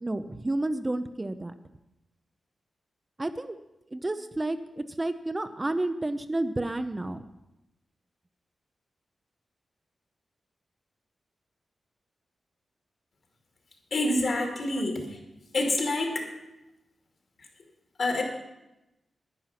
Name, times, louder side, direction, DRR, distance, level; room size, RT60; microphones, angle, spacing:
voice 1, 0.0-1.5 3.2-3.6 3.9-7.2 14.7-14.8, right 2 dB, 20° right, 10 dB, 0.5 m, -31 dB
voice 2, 13.9-15.0 15.5-16.2 18.0-18.2, left 2 dB, 60° left, 2 dB, 2.4 m, -26 dB
10.5 x 9.8 x 5.8 m, 0.95 s
wide cardioid pair, 120°, 0 cm